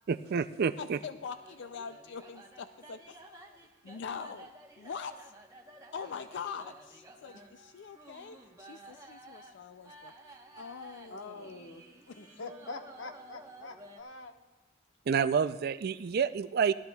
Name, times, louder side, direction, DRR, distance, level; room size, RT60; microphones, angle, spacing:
voice 1, 0.1-1.0 15.1-16.7, right 6 dB, 55° right, 13 dB, 0.4 m, -28 dB
voice 2, 0.8-5.3 5.9-11.6 12.1-12.4, left 6 dB, 65° left, 11 dB, 0.4 m, -44 dB
sound 1, 1.2-14.0, right 1 dB, 20° right, 1.0 m, -53 dB
voice 3, 7.3-7.7 11.1-11.8 12.2-14.3, left 3 dB, 85° left, 5 dB, 1.1 m, -45 dB
18.5 x 12.5 x 2.3 m, 1.1 s
head